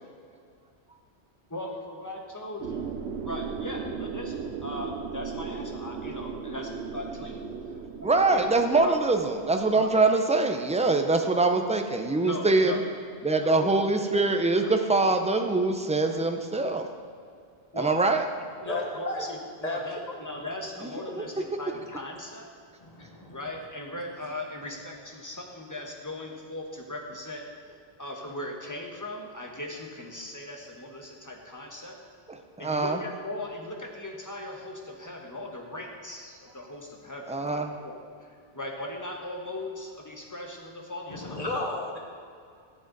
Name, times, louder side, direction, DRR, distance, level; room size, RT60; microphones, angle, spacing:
voice 1, 1.5-2.9 3.2-7.5 8.3-8.5 8.8-8.9 9.7-9.9 12.2-12.8 13.4-14.2 14.6-14.7 15.0-15.1 17.7-18.0 18.6-22.4 23.3-27.5 28.0-32.0 32.6-41.4, left 1 dB, 20° left, 1 dB, 1.2 m, -38 dB
sound 1, 2.6-10.0, right 5 dB, 90° right, 1.0 m, -37 dB
voice 2, 8.0-12.8 13.2-16.9 17.7-18.2 20.8-21.4 32.6-33.0 37.3-37.7, right 3 dB, 10° right, 5 dB, 0.5 m, -24 dB
voice 3, 18.6-19.2 19.6-19.8 22.8-23.4 41.1-42.0, left 2 dB, 40° left, 0 dB, 1.5 m, -33 dB
14.5 x 7.6 x 4.0 m, 2.3 s
omnidirectional pair, 1.1 m